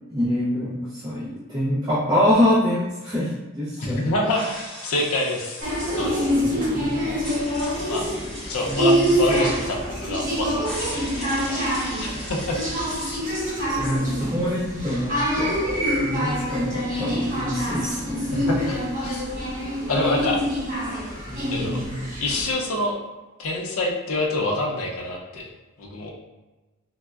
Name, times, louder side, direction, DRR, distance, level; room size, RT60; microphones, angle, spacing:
voice 1, 0.1-4.1 6.3-7.0 8.7-9.4 13.7-15.5 16.0-18.5 21.3-21.9, left 1 dB, 20° right, -9 dB, 0.4 m, -25 dB
voice 2, 3.8-5.7 6.0-6.3 7.8-8.1 8.4-12.6 13.0-13.2 18.3-19.3 19.9-20.4 21.5-21.8 22.2-23.0 23.4-25.5 25.8-26.1, left 1 dB, 75° left, 0 dB, 0.5 m, -27 dB
sound 1, 4.2-5.9 7.2-9.7 10.6-13.1, equal, ahead, 1.1 m, -37 dB
sound 2, 5.6-22.5, equal, 40° right, 1.1 m, -26 dB
3.4 x 2.0 x 2.2 m, 1.2 s
head